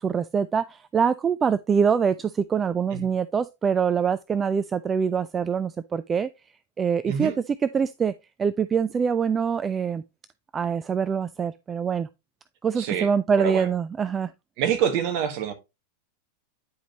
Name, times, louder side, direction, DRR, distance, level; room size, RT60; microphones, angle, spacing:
voice 1, 0.0-6.3 6.8-8.1 8.4-10.0 10.5-12.1 12.6-14.3, right 6 dB, 20° right, 0.3 m, -24 dB
voice 2, 12.8-13.1 13.4-13.7 14.6-15.5, right 8 dB, 45° right, 1.6 m, -26 dB
9.7 x 5.1 x 3.0 m
figure-of-eight pair, 90°, 0 cm